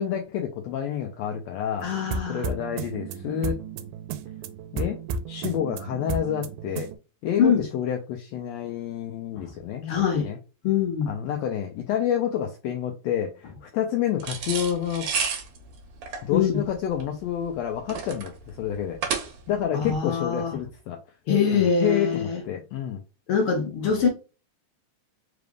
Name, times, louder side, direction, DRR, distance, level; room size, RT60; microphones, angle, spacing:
voice 1, 0.0-1.9 2.3-3.6 4.7-5.0 5.3-6.9 7.2-10.4 11.1-15.1 16.2-19.0 19.5-21.0 21.5-23.0, left 9 dB, 80° left, 1.7 m, -28 dB
voice 2, 1.8-2.5 7.4-7.7 9.3-9.5 9.9-10.3 10.6-11.1 16.3-16.6 19.7-20.6 21.3-22.4 23.3-24.1, left 7 dB, 60° left, 1.6 m, -23 dB
sound 1, 1.8-7.0, right 4 dB, 90° right, 2.0 m, -33 dB
sound 2, 14.2-19.6, right 6 dB, 70° right, 2.0 m, -32 dB
4.9 x 3.3 x 2.4 m
omnidirectional pair, 3.4 m